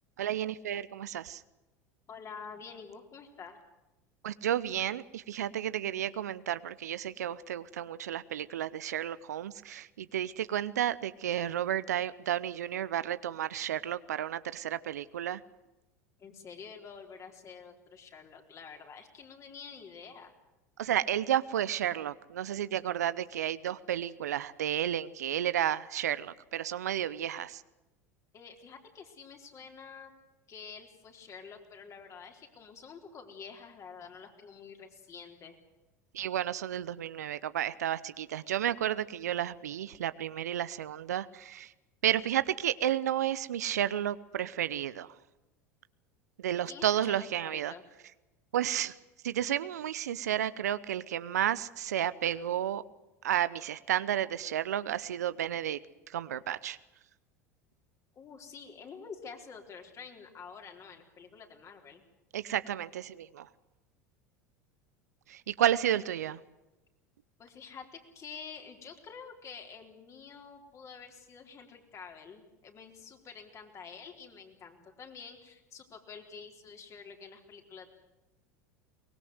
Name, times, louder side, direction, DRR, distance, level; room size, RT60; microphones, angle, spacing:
voice 1, 0.2-1.4 4.2-15.4 20.8-27.6 36.1-41.7 42.0-45.1 46.4-47.7 48.5-48.9 49.2-52.8 53.2-55.8 56.1-56.8 62.3-63.5 65.3-66.4, right 11 dB, 75° right, 16 dB, 0.7 m, -32 dB
voice 2, 2.1-3.6 16.2-20.3 28.3-30.1 30.5-35.6 46.6-47.8 58.2-62.0 65.9-66.0 67.4-77.9, left 6 dB, 35° left, 3 dB, 4.1 m, -48 dB
23.0 x 20.0 x 8.0 m, 1.0 s
hypercardioid pair, 80°, 9 cm